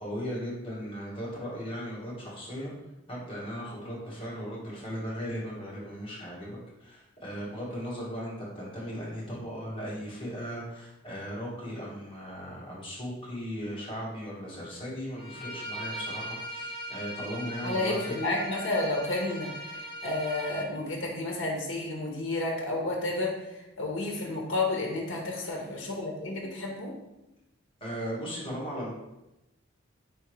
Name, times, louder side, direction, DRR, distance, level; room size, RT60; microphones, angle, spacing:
voice 1, 0.0-2.7 3.1-18.1 25.4-25.6 27.8-28.9, equal, 30° left, -6 dB, 1.5 m, -37 dB
Bowed string instrument, 15.2-20.7, equal, 50° right, 1.3 m, -39 dB
voice 2, 17.6-26.9, left 2 dB, 70° left, 0 dB, 0.9 m, -31 dB
4.4 x 3.5 x 3.1 m, 0.93 s
head